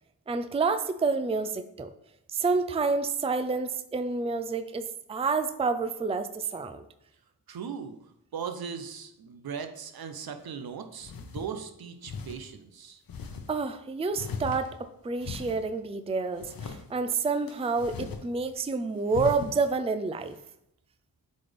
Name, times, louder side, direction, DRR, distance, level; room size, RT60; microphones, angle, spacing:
voice 1, 0.3-1.9 2.3-6.9 13.5-20.4, right 4 dB, 15° right, 10 dB, 0.4 m, -29 dB
voice 2, 7.5-7.9 8.3-13.0, right 6 dB, 65° right, 7 dB, 0.8 m, -38 dB
sound 1, 10.4-10.5 11.0-11.5 12.0-12.4 13.1-13.5 14.1-14.9 15.2-15.6 16.4-16.8 17.5-18.2 18.5-18.6 19.1-19.6, left 5 dB, 60° left, 0.9 m, -38 dB
8.2 x 4.2 x 3.4 m, 0.81 s
cardioid pair, 60°, 39 cm